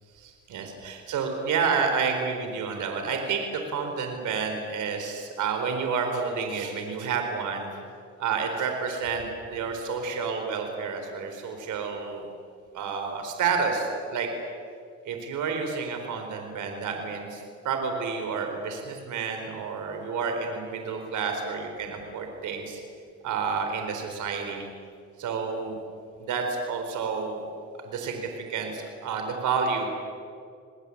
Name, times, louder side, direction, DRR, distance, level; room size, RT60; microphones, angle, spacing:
voice 1, 0.1-7.7 8.2-12.3 12.7-14.3 15.0-22.8 23.2-24.6 25.2-25.8 26.2-27.4 27.8-29.9, right 5 dB, 80° right, 4 dB, 4.3 m, -30 dB
28.0 x 20.5 x 8.6 m, 2.3 s
cardioid pair, 90°, 30 cm